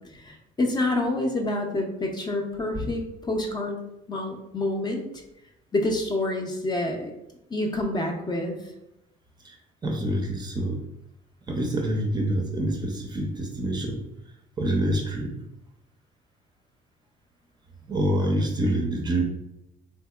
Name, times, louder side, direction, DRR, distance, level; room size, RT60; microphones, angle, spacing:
voice 1, 0.2-3.8 4.1-5.0 5.7-7.1 7.5-8.6, left 2 dB, 25° left, 2 dB, 0.5 m, -27 dB
voice 2, 9.8-10.8 11.5-14.0 14.6-15.3 17.9-19.2, right 1 dB, 25° right, 2 dB, 0.5 m, -26 dB
3.5 x 2.8 x 2.3 m, 0.86 s
cardioid pair, 110°, 17 cm